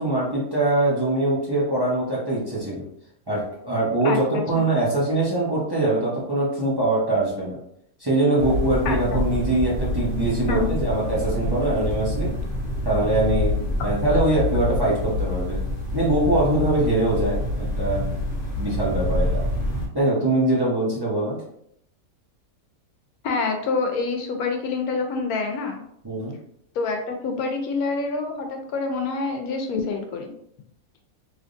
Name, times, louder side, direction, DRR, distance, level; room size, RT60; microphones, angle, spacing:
voice 1, 0.0-2.8 3.3-7.6 8.0-12.3 12.8-13.5 13.8-15.6 15.9-18.1 18.6-19.4 19.7-21.4 26.0-26.3, right 2 dB, 20° right, -7 dB, 0.8 m, -23 dB
voice 2, 4.0-4.7 8.9-9.2 10.4-10.7 23.2-25.8 26.7-30.3, left 4 dB, 80° left, 4 dB, 1.1 m, -27 dB
sound 1, 8.4-19.9, left 1 dB, 45° left, 0.8 m, -26 dB
3.4 x 2.9 x 2.6 m, 0.73 s
omnidirectional pair, 1.5 m